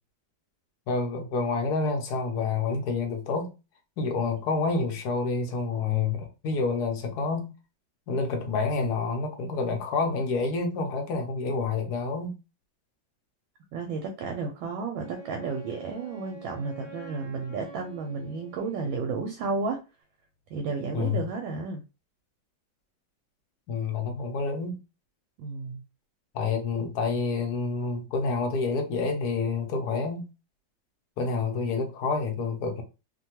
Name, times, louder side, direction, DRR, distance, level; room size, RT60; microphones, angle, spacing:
voice 1, 0.9-3.5 4.0-7.5 8.1-12.3 20.9-21.2 23.7-24.8 26.3-30.3 31.2-32.8, left 4 dB, 70° left, 1.0 m, -28 dB
voice 2, 13.7-19.8 20.5-21.8 25.4-25.8, right 4 dB, 80° right, 1.3 m, -32 dB
Wind instrument woodwind instrument, 15.0-19.3, right 2 dB, 55° right, 1.1 m, -47 dB
3.1 x 2.2 x 2.8 m
omnidirectional pair, 2.1 m